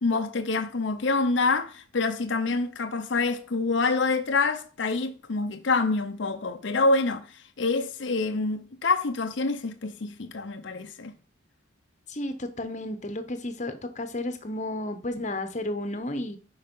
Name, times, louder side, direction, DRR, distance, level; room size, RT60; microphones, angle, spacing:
voice 1, 0.0-7.3 7.6-11.1, left 3 dB, 60° left, 0.7 m, -26 dB
voice 2, 12.1-16.4, left 1 dB, 35° left, 1.0 m, -32 dB
11.0 x 4.9 x 5.4 m
head